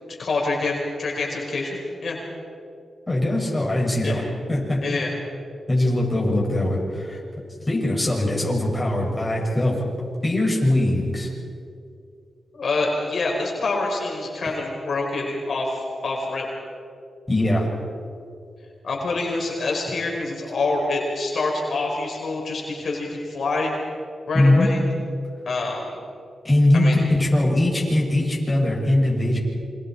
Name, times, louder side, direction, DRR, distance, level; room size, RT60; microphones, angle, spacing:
voice 1, 0.2-2.2 4.0-4.1 4.8-5.1 12.5-16.5 18.8-23.7 24.3-24.8 25.4-26.0 26.7-27.0, left 3 dB, 65° left, -1 dB, 4.7 m, -26 dB
voice 2, 3.1-4.2 4.5-4.9 5.7-7.2 7.7-9.8 10.2-11.3 17.3-17.7 24.3-24.7 26.4-29.4, left 1 dB, 20° left, -2 dB, 7.0 m, -21 dB
28.5 x 25.5 x 4.8 m, 2.5 s
cardioid pair, 75°, 0 cm